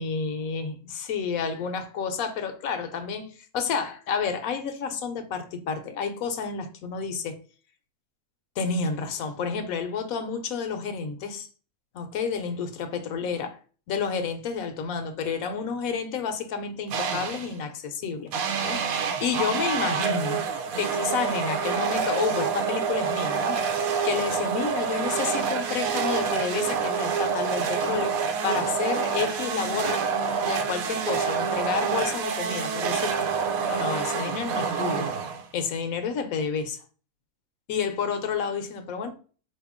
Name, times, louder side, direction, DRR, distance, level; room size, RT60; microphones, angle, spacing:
voice 1, 0.0-7.4 8.6-11.5 11.9-13.6 13.9-18.3 18.6-20.5 20.8-30.1 30.4-33.3 33.7-35.1 35.5-36.8 37.7-39.1, left 6 dB, 80° left, 1.1 m, -30 dB
sound 1, 16.9-17.6 18.3-35.7, right 6 dB, 85° right, 1.0 m, -27 dB
4.3 x 2.8 x 3.5 m
omnidirectional pair, 1.5 m